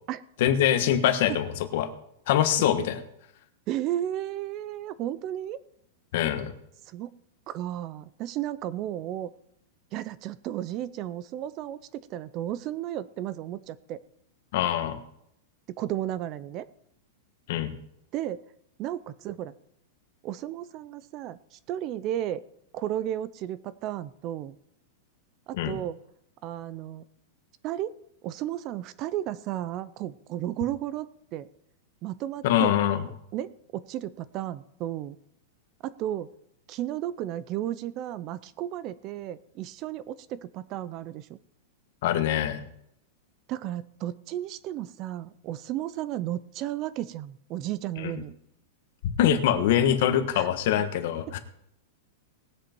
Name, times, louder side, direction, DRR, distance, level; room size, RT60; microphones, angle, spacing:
voice 1, 0.4-1.9 2.3-3.0 6.1-6.5 14.5-15.0 17.5-17.7 25.5-25.8 32.4-33.1 42.0-42.6 48.0-48.1 49.2-51.4, left 10 dB, 50° left, 8 dB, 1.4 m, -24 dB
voice 2, 3.7-5.6 6.8-7.1 7.5-9.3 9.9-14.0 15.7-16.7 18.1-18.4 18.8-19.5 20.2-22.4 22.7-24.6 25.5-26.0 26.4-27.0 27.6-28.0 28.2-31.5 32.0-32.7 33.3-35.2 35.8-36.3 36.7-41.4 43.5-48.3 50.3-50.5 51.3-51.4, right 12 dB, 30° right, 17 dB, 0.4 m, -33 dB
19.5 x 7.9 x 4.5 m, 0.77 s
supercardioid pair, 170°, 0 cm